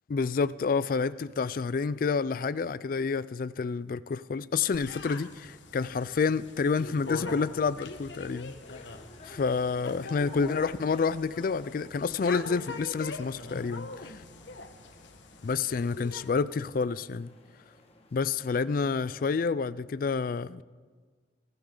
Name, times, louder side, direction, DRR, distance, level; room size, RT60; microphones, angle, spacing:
voice 1, 0.1-8.5 9.2-14.2 15.4-17.3 18.1-20.6, left 5 dB, 50° left, 0.4 m, -29 dB
sound 1, 4.7-16.3, left 3 dB, 80° left, 1.3 m, -43 dB
sound 2, 7.4-19.4, left 2 dB, 35° left, 1.6 m, -55 dB
22.5 x 14.5 x 3.9 m
head